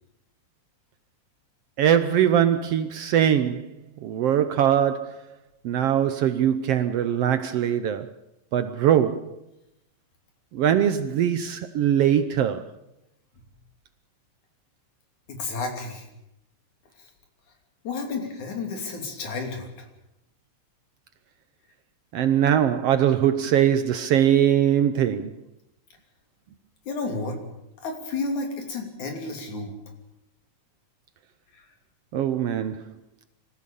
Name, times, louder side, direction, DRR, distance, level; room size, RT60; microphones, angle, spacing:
voice 1, 1.8-3.8 4.0-5.2 5.6-8.1 8.5-9.4 10.5-12.7 22.1-25.4 32.1-32.8, right 10 dB, 70° right, 1.6 m, -22 dB
voice 2, 15.3-16.1 17.0-17.1 17.8-19.9 26.9-27.4 27.8-29.7 31.5-31.7, left 3 dB, 75° left, 4.5 m, -31 dB
25.0 x 15.0 x 7.0 m
omnidirectional pair, 3.4 m